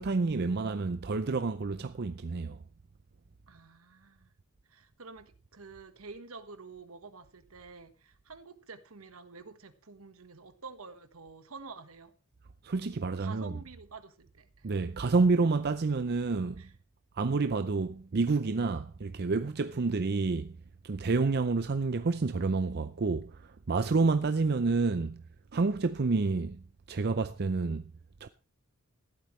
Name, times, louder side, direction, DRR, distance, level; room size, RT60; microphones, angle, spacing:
voice 1, 0.0-2.6 12.6-13.6 14.6-16.6 17.2-20.5 20.8-25.2 25.5-27.8 28.2-28.3, right 3 dB, 50° right, 0.6 m, -29 dB
voice 2, 3.5-4.3 4.7-12.1 13.2-14.7 16.6-16.7, right 4 dB, 75° right, 1.4 m, -49 dB
14.5 x 12.0 x 3.2 m
head